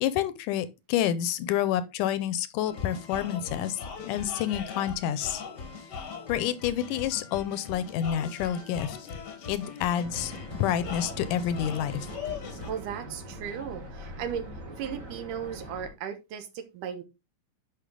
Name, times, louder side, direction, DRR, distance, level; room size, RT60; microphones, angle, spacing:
voice 1, 0.0-5.4 6.3-9.0 9.5-10.3 10.6-11.9, left 10 dB, 80° left, 2.1 m, -28 dB
sound 1, 2.7-12.7, left 5 dB, 50° left, 1.2 m, -40 dB
sound 2, 10.0-15.9, right 1 dB, 30° right, 1.6 m, -42 dB
voice 2, 12.7-14.5 14.8-17.0, right 8 dB, 75° right, 2.6 m, -36 dB
9.9 x 5.3 x 3.7 m
omnidirectional pair, 3.8 m